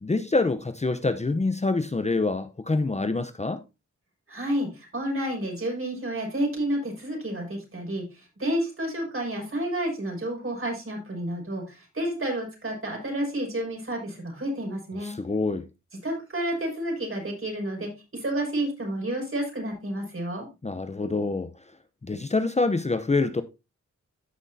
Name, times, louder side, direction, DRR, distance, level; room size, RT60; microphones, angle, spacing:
voice 1, 0.0-3.6 15.0-15.7 20.6-21.5 22.0-23.4, left 3 dB, 25° left, 0.7 m, -26 dB
voice 2, 4.3-15.1 16.0-20.5, right 1 dB, 45° right, 5.8 m, -30 dB
14.5 x 6.1 x 2.7 m
cardioid pair, 65°, 29 cm